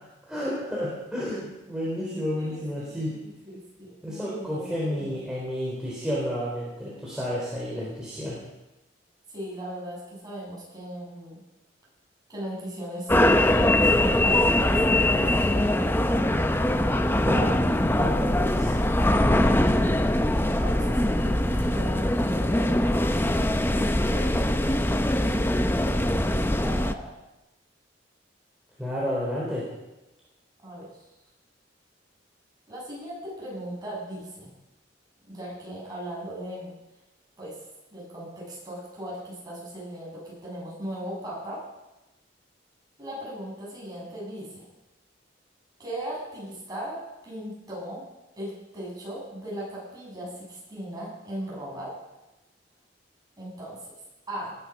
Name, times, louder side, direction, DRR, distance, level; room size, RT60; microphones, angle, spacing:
voice 1, 0.3-3.1 4.0-8.4 17.2-18.8 28.8-29.6, equal, 5° right, -6 dB, 4.0 m, -31 dB
voice 2, 2.4-5.2 9.3-11.4 12.3-16.2 17.9-18.2 20.5-27.1 30.6-30.9 32.7-34.5 35.3-36.7 37.4-37.6 37.9-41.6 43.0-44.6 45.8-48.0 48.4-51.9 53.4-53.9 54.3-54.6, equal, 20° right, -5 dB, 7.9 m, -38 dB
sound 1, 13.1-26.9, left 1 dB, 10° left, 0.7 m, -22 dB
19.5 x 11.0 x 6.1 m, 0.99 s
head